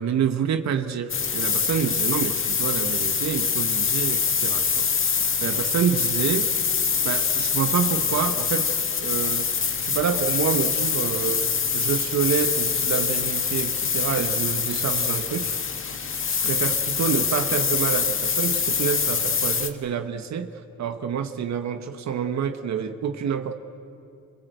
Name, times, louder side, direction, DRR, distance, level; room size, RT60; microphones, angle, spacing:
voice 1, 0.0-6.5 7.0-9.5 9.8-15.5 16.3-23.5, right 7 dB, 65° right, 8 dB, 1.3 m, -28 dB
sound 1, 1.1-19.7, left 6 dB, 40° left, 1.8 m, -24 dB
27.0 x 26.0 x 8.1 m, 2.7 s
cardioid pair, 90°, 30 cm